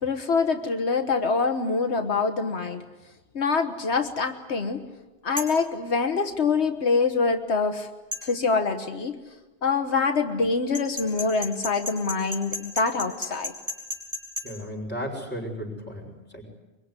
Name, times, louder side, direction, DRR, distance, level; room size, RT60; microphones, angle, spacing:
voice 1, 0.0-2.8 3.3-4.8 5.2-7.9 8.2-9.2 9.6-13.5, left 4 dB, 85° left, 6 dB, 1.7 m, -25 dB
sound 1, 5.4-5.6 8.1-8.3 10.7-14.5, left 1 dB, 25° right, 4.4 m, -33 dB
voice 2, 14.4-16.4, equal, 10° left, -1 dB, 5.9 m, -34 dB
23.5 x 23.0 x 9.8 m, 1.1 s
omnidirectional pair, 1.1 m